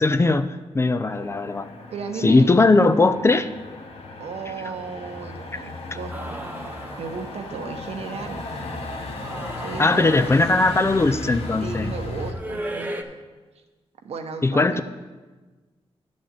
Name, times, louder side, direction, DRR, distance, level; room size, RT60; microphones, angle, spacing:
voice 1, 0.0-1.7 2.2-3.5 5.5-5.6 9.8-11.9 14.4-14.8, left 3 dB, 25° left, 11 dB, 0.4 m, -19 dB
Motor vehicle (road), 1.1-12.3, left 2 dB, 75° left, 1.2 m, -35 dB
voice 2, 1.9-2.5 2.7-2.8 4.2-6.5 7.0-8.5 9.6-10.7 11.6-13.2 14.0-14.8, right 5 dB, 85° right, 5 dB, 1.0 m, -34 dB
sound 1, 6.1-7.7 9.0-10.8 12.3-13.0, right 1 dB, 15° right, 0.7 m, -36 dB
10.5 x 4.2 x 7.6 m, 1.3 s
wide cardioid pair, 95°, 10 cm